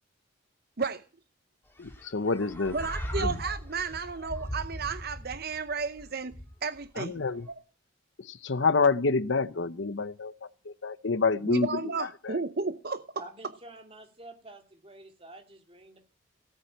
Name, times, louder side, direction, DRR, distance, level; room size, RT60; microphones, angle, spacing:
voice 1, 1.8-2.8 3.2-3.4 7.0-7.4 8.2-10.3 10.6-12.4, left 4 dB, 65° left, 0.8 m, -28 dB
sound 1, 1.8-6.9, equal, 10° left, 3.1 m, -38 dB
voice 2, 2.7-7.1 11.5-13.0, right 4 dB, 50° right, 0.8 m, -33 dB
voice 3, 13.2-16.0, right 1 dB, 30° right, 3.0 m, -48 dB
17.0 x 9.1 x 8.9 m
head